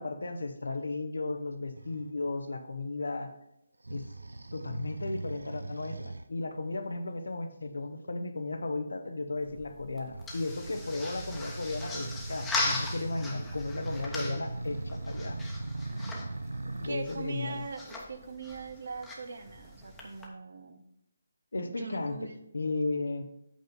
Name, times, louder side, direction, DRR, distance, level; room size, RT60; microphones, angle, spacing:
voice 1, 0.0-3.3 3.9-4.1 4.5-15.4 16.8-17.7 21.5-23.2, left 3 dB, 75° left, 8 dB, 0.9 m, -35 dB
sound 1, 1.7-2.1 3.8-6.3 10.1-16.9, right 2 dB, 80° right, 0.6 m, -39 dB
sound 2, 9.3-20.3, left 2 dB, 5° left, 1.1 m, -39 dB
voice 2, 16.6-20.8 21.6-22.5, right 4 dB, 60° right, 8 dB, 0.9 m, -41 dB
8.3 x 3.9 x 5.3 m, 0.81 s
figure-of-eight pair, 150°, 0 cm